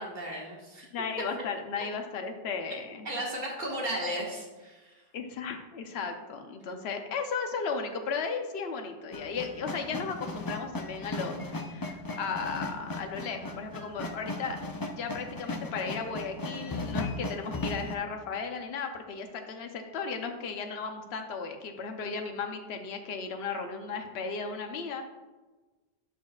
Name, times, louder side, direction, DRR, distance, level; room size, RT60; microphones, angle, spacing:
voice 1, 0.0-0.9 3.1-5.0, right 1 dB, 40° right, -2 dB, 1.8 m, -35 dB
voice 2, 0.9-3.1 5.1-14.6 14.9-25.0, left 5 dB, 65° left, 5 dB, 1.0 m, -35 dB
sound 1, 9.1-17.9, left 2 dB, 35° left, 0.3 m, -36 dB
11.5 x 6.2 x 2.4 m, 1.2 s
omnidirectional pair, 1.2 m